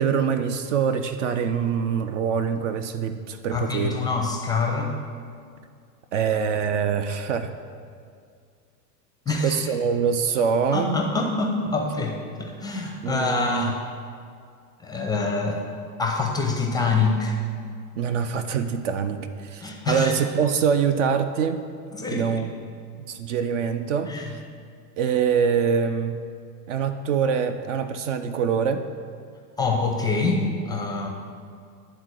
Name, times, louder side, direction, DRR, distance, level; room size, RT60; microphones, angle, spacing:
voice 1, 0.0-4.0 6.1-7.5 9.4-11.0 13.0-13.8 18.0-21.6 22.1-22.5 23.1-24.4 25.0-26.2 26.7-28.9, right 7 dB, 50° right, 9 dB, 0.5 m, -24 dB
voice 2, 3.5-4.9 9.3-9.6 10.7-13.8 14.8-15.6 16.0-17.4 19.6-20.1 21.9-22.3 24.1-24.3 29.6-31.1, left 3 dB, 10° left, 1 dB, 0.5 m, -25 dB
9.7 x 3.8 x 6.1 m, 2.2 s
figure-of-eight pair, 85°, 50 cm